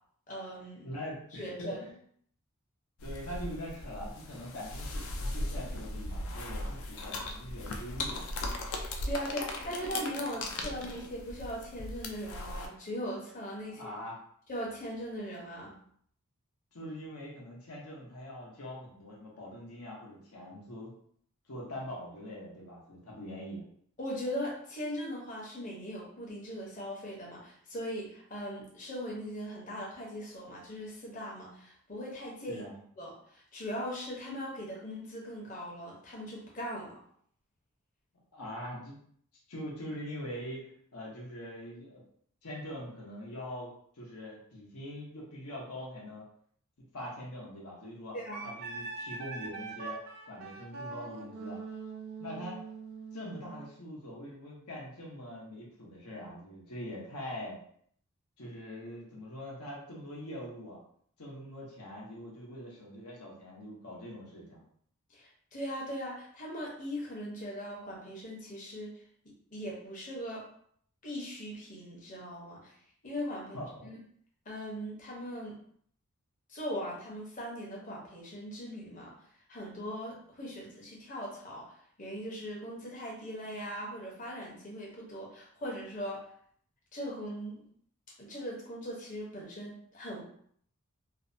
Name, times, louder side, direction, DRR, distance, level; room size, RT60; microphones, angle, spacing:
voice 1, 0.3-0.9 1.4-1.8 8.7-13.9 14.5-15.8 24.0-32.6 33.0-37.0 48.1-48.5 65.1-69.0 69.5-70.5 71.0-72.7 73.0-73.6 73.8-74.0 74.5-75.6 76.5-79.1 79.5-86.2 86.9-87.6 88.2-90.2, equal, 35° left, -3 dB, 0.7 m, -39 dB
voice 2, 0.8-1.9 3.0-8.2 13.7-14.2 16.7-20.9 21.5-23.6 32.5-32.8 38.3-39.0 39.5-42.0 42.4-46.2 46.9-48.1 48.4-50.0 50.3-51.6 52.2-52.6 53.1-57.6 58.4-60.8 61.2-64.6 73.5-73.6, equal, 85° left, -4 dB, 0.9 m, -43 dB
sound 1, 3.0-12.7, left 2 dB, 65° left, 0.4 m, -38 dB
Wind instrument woodwind instrument, 48.3-53.7, right 4 dB, 45° right, 0.4 m, -42 dB
2.6 x 2.1 x 2.6 m, 0.63 s
head